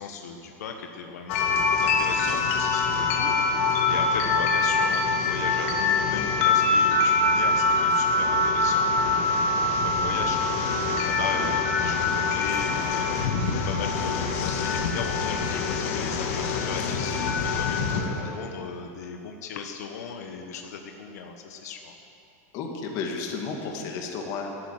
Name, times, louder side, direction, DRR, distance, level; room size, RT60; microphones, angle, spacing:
voice 1, 0.0-22.0, left 6 dB, 85° left, 3 dB, 1.4 m, -37 dB
sound 1, 1.3-18.0, left 3 dB, 55° left, 2.0 m, -24 dB
voice 2, 18.0-18.3 22.5-24.5, left 5 dB, 40° left, 2 dB, 2.2 m, -33 dB
12.5 x 11.5 x 9.0 m, 2.8 s
supercardioid pair, 155°, 9 cm